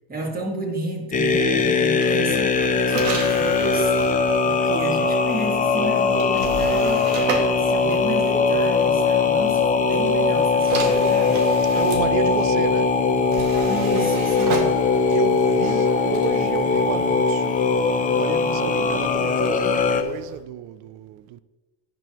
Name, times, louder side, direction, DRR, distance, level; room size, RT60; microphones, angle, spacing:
voice 1, 0.1-11.5 13.7-14.9 18.2-18.7, right 1 dB, 20° right, 1.9 m, -32 dB
sound 1, 1.1-20.0, left 4 dB, 20° left, 0.5 m, -20 dB
sound 2, 1.9-8.8 9.9-20.4, right 4 dB, 90° right, 2.2 m, -35 dB
voice 2, 11.7-13.0 15.1-17.6 18.0-21.4, right 12 dB, 70° right, 0.6 m, -31 dB
Race car auto racing / Accelerating revving vroom, 13.4-20.1, right 2 dB, 40° right, 1.9 m, -40 dB
17.0 x 6.1 x 3.0 m
cardioid pair, 150°, 47 cm